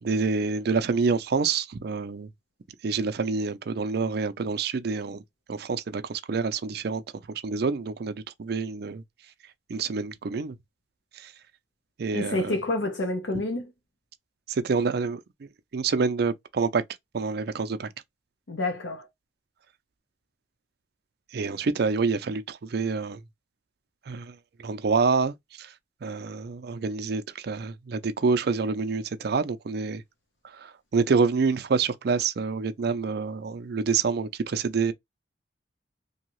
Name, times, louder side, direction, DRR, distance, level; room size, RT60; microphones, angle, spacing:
voice 1, 0.0-2.3 2.8-5.2 5.5-7.0 7.3-9.0 9.7-10.6 11.2-11.3 12.0-12.5 14.5-16.8 17.1-17.9 21.3-23.2 24.1-24.4 24.6-25.7 26.0-30.0 30.4-34.9, right 4 dB, 60° right, 0.4 m, -27 dB
voice 2, 12.1-13.7 18.5-19.1, left 2 dB, 80° left, 0.7 m, -28 dB
2.7 x 2.3 x 3.0 m
head